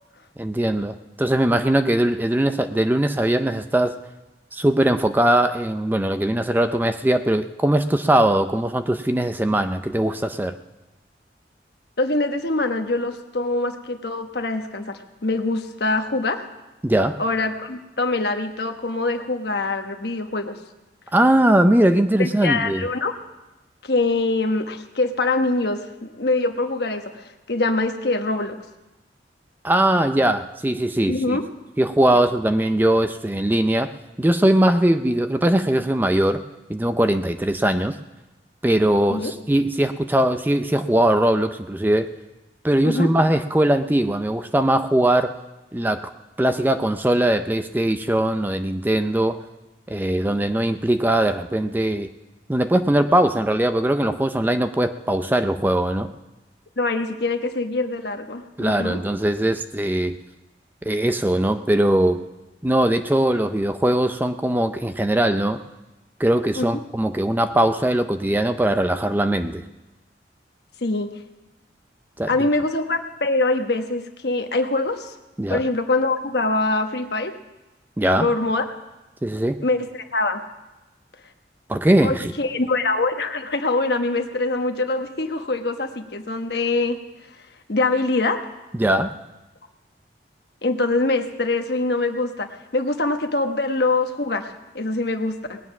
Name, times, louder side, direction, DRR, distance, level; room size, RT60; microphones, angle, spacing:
voice 1, 0.4-4.0 4.5-10.5 16.8-17.2 21.1-22.8 29.6-31.4 31.8-33.9 34.2-36.4 36.7-38.0 38.6-42.1 42.6-45.3 45.7-46.1 46.4-49.4 49.9-52.1 52.5-56.1 58.6-60.1 60.8-62.2 62.6-65.6 66.2-69.6 72.2-72.3 75.4-75.6 78.0-78.3 79.2-79.6 81.7-82.3 88.7-89.1, right 1 dB, 10° right, 9 dB, 0.4 m, -20 dB
voice 2, 12.0-16.4 17.2-20.6 22.2-23.1 23.8-28.6 31.1-31.4 32.0-32.2 39.1-39.3 42.8-43.1 56.8-59.0 66.6-66.8 70.8-71.1 72.3-75.1 75.5-77.3 78.2-78.6 79.6-80.4 82.0-87.0 87.7-88.4 90.6-95.6, left 2 dB, 65° left, 6 dB, 1.1 m, -24 dB
19.0 x 9.4 x 5.9 m, 1.1 s
head